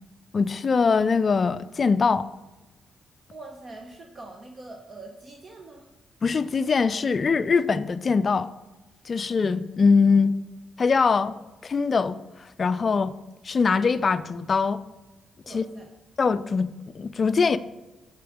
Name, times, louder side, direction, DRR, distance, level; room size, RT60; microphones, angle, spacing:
voice 1, 0.3-2.3 6.2-8.5 9.1-10.3 10.8-11.3 11.6-12.2 12.6-13.1 13.4-14.8 15.5-15.6 16.2-17.6, left 5 dB, 40° left, 0.3 m, -22 dB
voice 2, 3.3-5.9 10.1-10.3 15.4-15.9, right 2 dB, 35° right, 0.7 m, -44 dB
6.1 x 4.8 x 3.5 m
cardioid pair, 95°, 0 cm